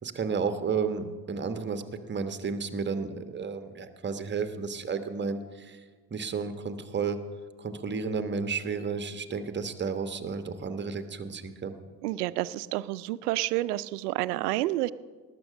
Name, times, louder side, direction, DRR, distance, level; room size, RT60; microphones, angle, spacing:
voice 1, 0.0-1.8 2.1-5.4 5.7-5.8 6.1-7.2 7.6-11.7, right 5 dB, 20° right, 9 dB, 1.2 m, -32 dB
voice 2, 12.0-14.9, right 16 dB, 70° right, 18 dB, 0.6 m, -29 dB
18.5 x 6.8 x 6.5 m, 1.4 s
figure-of-eight pair, 55°, 48 cm